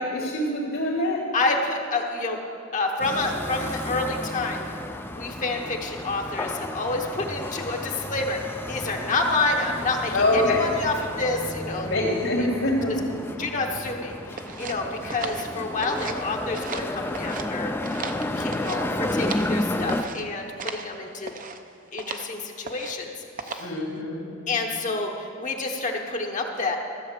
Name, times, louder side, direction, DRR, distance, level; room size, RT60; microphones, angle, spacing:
voice 1, 0.0-1.2 10.1-10.7 11.8-13.2 23.6-24.4, left 1 dB, 80° left, -8 dB, 2.5 m, -25 dB
voice 2, 1.3-2.4 2.7-4.7 5.1-11.9 12.9-13.0 13.4-17.7 18.3-21.3 21.9-23.2 23.4-23.7 24.5-26.8, left 3 dB, 40° left, 1 dB, 1.0 m, -28 dB
sound 1, 3.0-20.0, left 1 dB, 10° left, 0.5 m, -32 dB
sound 2, 14.4-16.2 16.5-17.5 17.8-19.5 19.9-20.2 20.6-20.9 21.2-21.6 22.0-22.3 22.6-23.0 23.4-23.8, right 5 dB, 40° right, 0.7 m, -36 dB
14.0 x 7.8 x 6.7 m, 2.8 s
head